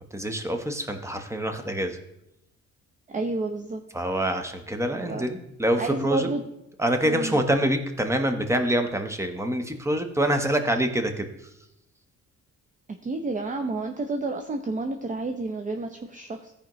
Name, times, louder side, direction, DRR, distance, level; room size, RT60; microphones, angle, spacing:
voice 1, 0.1-2.0 3.9-6.3 6.8-11.5, right 1 dB, 10° right, 6 dB, 1.0 m, -26 dB
voice 2, 3.1-3.8 4.9-5.3 5.8-6.4 7.0-7.4 13.0-16.5, right 2 dB, 25° right, 5 dB, 0.6 m, -30 dB
14.0 x 5.0 x 3.1 m, 0.84 s
cardioid pair, 90°, 30 cm